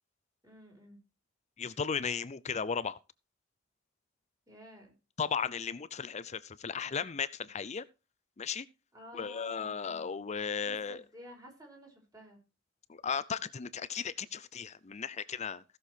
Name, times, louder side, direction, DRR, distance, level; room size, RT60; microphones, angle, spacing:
voice 1, 0.4-1.0 4.5-4.9 8.9-10.2 10.6-12.4, left 1 dB, 20° right, 5.1 m, -52 dB
voice 2, 1.6-3.0 5.2-7.8 8.4-8.7 9.1-11.0 12.9-15.6, left 6 dB, 35° left, 0.5 m, -35 dB
16.0 x 6.8 x 4.5 m
head